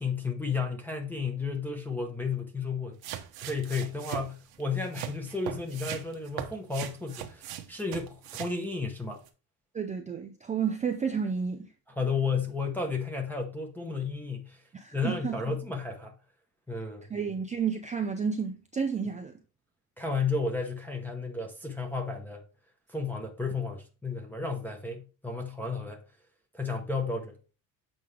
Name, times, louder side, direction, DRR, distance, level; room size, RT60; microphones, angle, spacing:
voice 1, 0.0-3.0 3.4-9.2 12.0-14.6 14.9-16.1 16.7-17.1 20.0-22.4 22.9-26.0 26.5-27.4, left 4 dB, 5° left, 0.9 m, -33 dB
sound 1, 3.0-8.6 9.3-9.4, right 10 dB, 55° right, 1.1 m, -39 dB
voice 2, 9.7-11.7 14.7-15.5 17.1-19.4, right 6 dB, 20° right, 0.4 m, -31 dB
7.7 x 5.2 x 3.2 m
cardioid pair, 180°, 45 cm